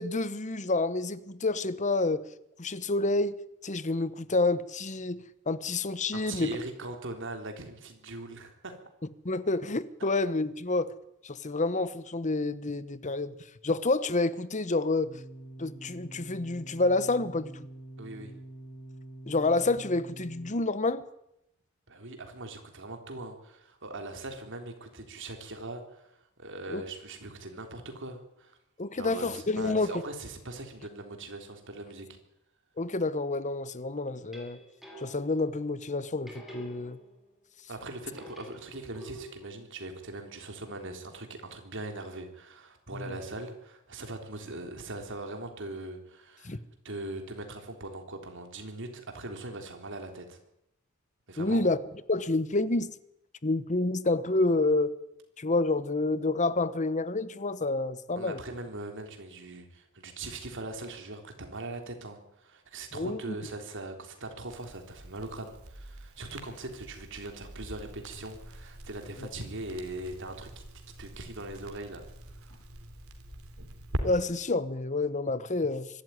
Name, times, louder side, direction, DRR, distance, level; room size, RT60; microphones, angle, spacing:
voice 1, 0.0-2.2 2.6-3.3 3.6-6.5 9.2-10.9 11.2-13.3 13.6-15.1 15.6-17.5 19.3-21.0 26.7-26.8 28.8-29.9 32.8-34.6 35.0-37.0 42.9-43.1 46.4-46.6 51.4-51.8 52.1-52.9 53.4-55.0 55.4-58.4 62.9-63.3 69.2-69.3 74.0-75.9, left 2 dB, 35° left, 1.0 m, -28 dB
voice 2, 6.1-8.8 18.0-18.3 21.9-28.6 28.9-32.1 37.7-46.6 46.8-50.4 51.3-51.6 58.2-70.6 71.0-72.1 72.4-72.5, right 2 dB, 60° right, 3.7 m, -41 dB
sound 1, 15.0-20.5, right 1 dB, 60° left, 5.9 m, -46 dB
sound 2, 34.1-35.5 36.3-37.4 38.1-39.5, right 1 dB, ahead, 5.0 m, -48 dB
Crackle, 64.5-74.0, right 1 dB, 80° right, 3.4 m, -43 dB
24.0 x 13.0 x 9.7 m
head